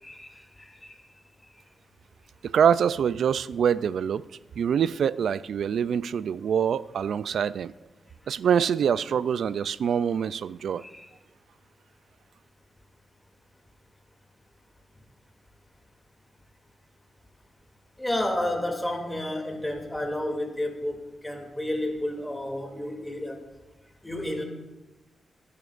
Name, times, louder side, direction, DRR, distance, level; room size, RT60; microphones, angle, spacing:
voice 1, 0.0-1.0 10.8-11.1 18.0-23.4 24.0-24.4, left 1 dB, 10° left, 2.5 m, -31 dB
voice 2, 2.4-4.3 4.6-7.7 8.3-10.8, right 8 dB, 80° right, 0.3 m, -25 dB
24.0 x 11.0 x 2.5 m
cardioid pair, 85°, 0 cm